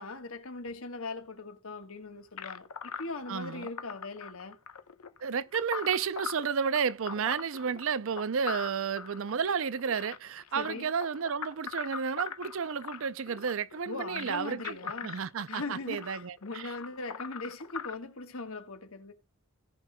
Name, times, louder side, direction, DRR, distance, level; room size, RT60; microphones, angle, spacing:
voice 1, 0.0-4.6 10.5-10.9 13.9-15.2 15.5-19.1, left 3 dB, 70° left, 1.5 m, -40 dB
sound 1, 2.4-17.9, left 7 dB, 85° left, 0.9 m, -42 dB
voice 2, 3.3-3.7 5.2-14.8 15.0-16.7, right 6 dB, 60° right, 0.5 m, -32 dB
17.5 x 5.9 x 2.2 m
head